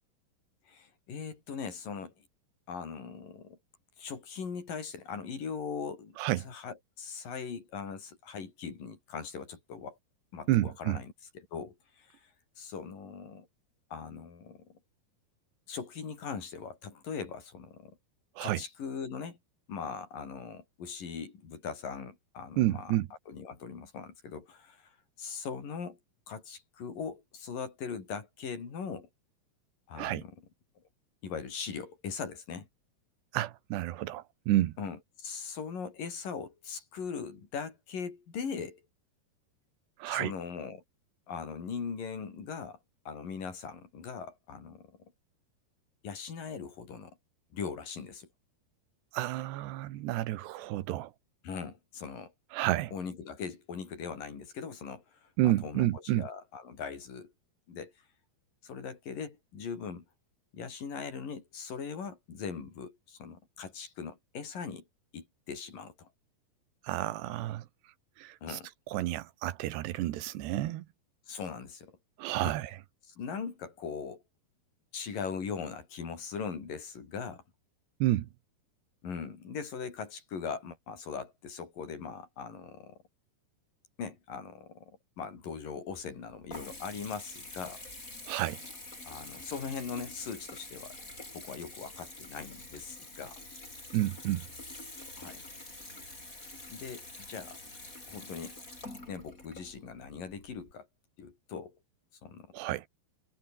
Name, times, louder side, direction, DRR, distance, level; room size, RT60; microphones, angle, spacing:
voice 1, 0.7-2.1 2.7-3.6 4.0-6.2 6.4-10.0 10.3-12.2 12.6-13.5 13.9-14.7 15.7-18.0 18.4-19.4 19.7-22.9 23.3-24.9 25.2-26.0 26.3-29.1 29.9-30.3 31.2-32.7 34.8-38.8 40.1-40.8 41.3-42.8 43.1-45.1 46.0-47.2 47.5-48.3 51.4-52.3 52.9-57.3 57.7-57.9 58.6-60.0 60.5-64.8 65.1-66.1 68.4-68.7 71.3-72.0 72.4-72.6 73.2-74.2 74.9-77.4 79.0-83.0 84.0-87.8 89.1-90.9 91.3-93.3 95.2-95.4 96.7-97.6 98.1-98.6 99.1-100.9 101.2-101.8 102.2-102.5, left 6 dB, 55° left, 6.1 m, -40 dB
voice 2, 6.2-6.5 10.5-11.0 18.4-18.6 22.6-23.1 30.0-30.3 33.3-34.7 40.0-40.3 49.1-51.1 52.5-52.9 55.4-56.3 66.8-67.7 68.2-68.6 68.9-70.9 72.2-72.8 78.0-78.3 88.3-88.6 93.9-94.5 102.5-102.9, right 15 dB, 90° right, 3.4 m, -30 dB
Water tap faucet / Bathtub (filling or washing) / Trickle dribble, 85.9-100.7, left 2 dB, 20° left, 6.8 m, -47 dB
omnidirectional pair, 4.7 m